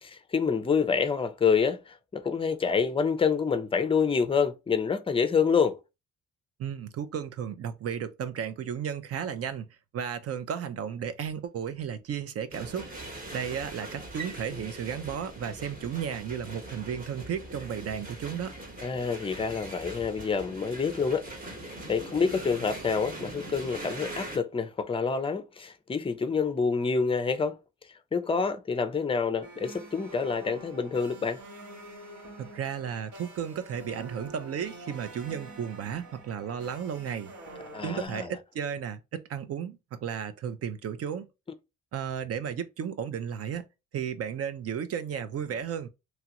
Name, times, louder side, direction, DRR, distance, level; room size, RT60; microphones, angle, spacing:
voice 1, 0.0-5.8 18.8-21.3 21.6-27.6 28.1-31.4 37.7-38.3, left 5 dB, 20° left, 0.5 m, -27 dB
voice 2, 6.6-12.9 13.3-18.5 32.4-37.3 37.8-41.3 41.9-43.7 43.9-45.9, right 8 dB, 50° right, 0.5 m, -34 dB
sound 1, 12.5-24.4, right 1 dB, 30° right, 1.0 m, -41 dB
sound 2, 29.4-38.1, right 2 dB, 70° right, 1.3 m, -47 dB
3.0 x 2.4 x 2.9 m
cardioid pair, 90°, 30 cm